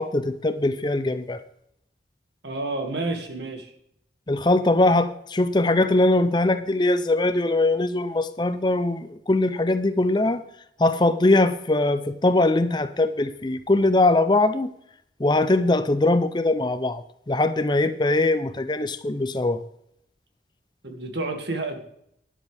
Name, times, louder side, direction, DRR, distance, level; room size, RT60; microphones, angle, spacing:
voice 1, 0.0-1.4 4.3-10.4 10.8-14.7 15.2-19.6, left 2 dB, 25° left, 12 dB, 0.6 m, -21 dB
voice 2, 2.4-3.7 20.8-21.8, right 2 dB, 80° right, 4 dB, 2.1 m, -30 dB
12.0 x 11.0 x 3.5 m, 0.73 s
head